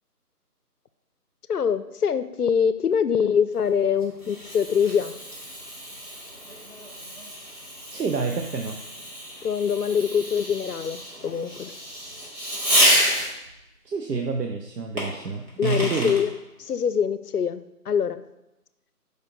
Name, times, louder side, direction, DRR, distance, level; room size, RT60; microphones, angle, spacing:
voice 1, 1.5-5.1 9.4-11.7 15.6-16.3 16.6-18.2, left 7 dB, 70° left, 13 dB, 0.5 m, -24 dB
Fireworks, 3.6-13.5 15.0-16.2, equal, 60° right, 2.2 m, -29 dB
voice 2, 7.9-8.8 13.9-16.2, right 4 dB, 85° right, 3 dB, 0.7 m, -28 dB
7.7 x 5.1 x 2.7 m, 0.93 s
figure-of-eight pair, 175°, 47 cm